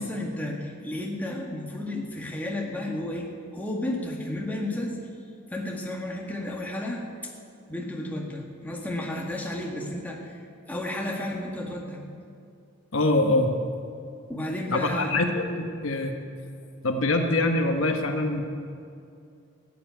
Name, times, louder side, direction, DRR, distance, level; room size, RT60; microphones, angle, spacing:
voice 1, 0.0-5.0 5.5-7.3 7.7-12.0 14.3-15.2, left 1 dB, 10° left, -2 dB, 1.7 m, -32 dB
voice 2, 12.9-13.5 14.7-16.1 16.8-18.4, left 2 dB, 70° left, 4 dB, 1.2 m, -24 dB
13.5 x 8.4 x 9.2 m, 2.4 s
head